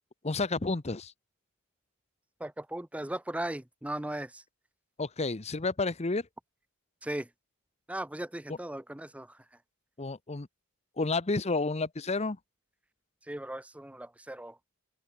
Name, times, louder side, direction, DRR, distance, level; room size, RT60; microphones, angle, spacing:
voice 1, 0.2-1.1 5.0-6.3 10.0-10.5 11.0-12.4, left 3 dB, 30° left, 0.8 m, -30 dB
voice 2, 2.4-4.4 7.0-7.3 7.9-9.4 13.2-14.6, right 1 dB, 5° right, 0.6 m, -37 dB
open air
head